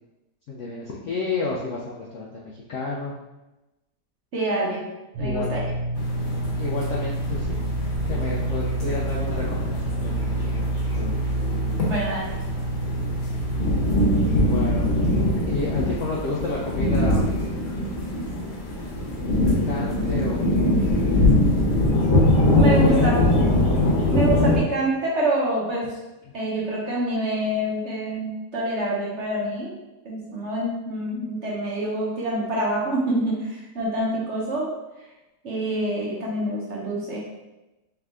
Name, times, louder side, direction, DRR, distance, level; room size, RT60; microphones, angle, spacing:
voice 1, 0.5-3.1 5.2-5.7 6.6-7.5 8.1-11.3 14.4-14.8 15.5-17.3 19.5-21.7 22.7-23.2 23.8-24.0, left 3 dB, 70° left, -4 dB, 0.7 m, -31 dB
voice 2, 4.3-4.9 5.2-5.6 11.9-12.3 22.6-23.1 24.1-25.9 26.3-29.7 30.0-34.7 35.4-37.2, right 1 dB, 55° right, -5 dB, 0.9 m, -26 dB
sound 1, 5.1-15.4, right 1 dB, 70° right, 1.2 m, -27 dB
sound 2, 6.0-24.6, left 1 dB, 55° left, 1.1 m, -23 dB
3.5 x 3.3 x 3.6 m, 1.0 s
omnidirectional pair, 1.8 m